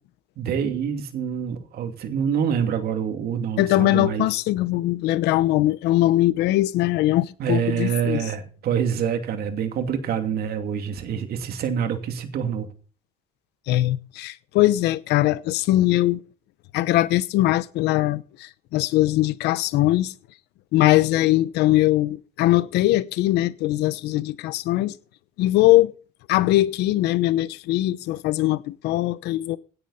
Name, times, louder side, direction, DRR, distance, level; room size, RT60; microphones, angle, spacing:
voice 1, 0.4-4.3 7.4-12.7, right 8 dB, 65° right, 2.6 m, -26 dB
voice 2, 3.6-8.2 13.7-16.2 16.7-20.1 20.7-25.0 25.4-25.9 26.3-29.6, left 16 dB, 85° left, 0.9 m, -21 dB
17.5 x 10.0 x 4.2 m
cardioid pair, 110°, 17 cm